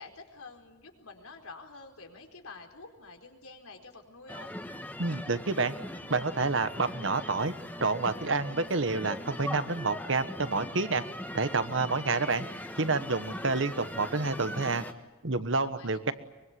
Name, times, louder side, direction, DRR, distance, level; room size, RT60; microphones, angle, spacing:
voice 1, 0.0-4.5 15.6-16.0, left 3 dB, 85° left, 4 dB, 4.3 m, -48 dB
sound 1, 4.3-14.9, left 1 dB, 10° left, 1.4 m, -41 dB
voice 2, 5.0-5.7 6.1-7.5 7.8-11.0 11.3-12.5 12.8-14.8 15.2-16.1, right 3 dB, 60° right, 11 dB, 1.3 m, -29 dB
24.0 x 23.0 x 9.6 m, 1.1 s
head